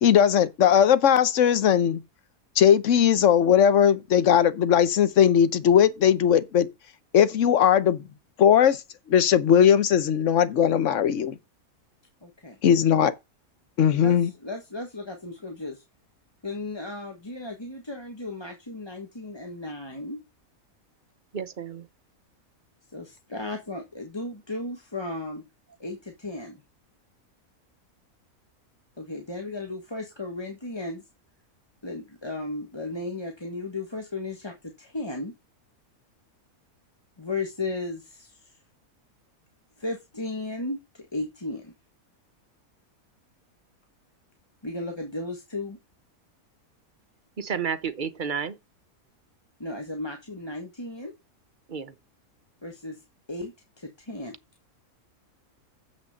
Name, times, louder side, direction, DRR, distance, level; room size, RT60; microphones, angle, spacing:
voice 1, 0.0-2.0 2.6-6.7 7.1-8.0 8.4-8.8 9.1-11.3 12.6-13.1 13.8-14.3, left 9 dB, 60° left, 1.3 m, -19 dB
voice 2, 12.2-12.6 14.0-15.8 16.4-20.2 22.9-25.4 25.8-26.6 29.0-31.0 31.8-35.3 37.2-38.6 39.8-41.7 44.6-45.8 49.6-51.1 52.6-53.0 53.3-54.3, left 2 dB, 20° left, 1.4 m, -35 dB
voice 3, 21.3-21.9 47.4-48.6 51.7-51.9, right 6 dB, 40° right, 0.8 m, -31 dB
7.3 x 6.4 x 6.4 m
omnidirectional pair, 1.5 m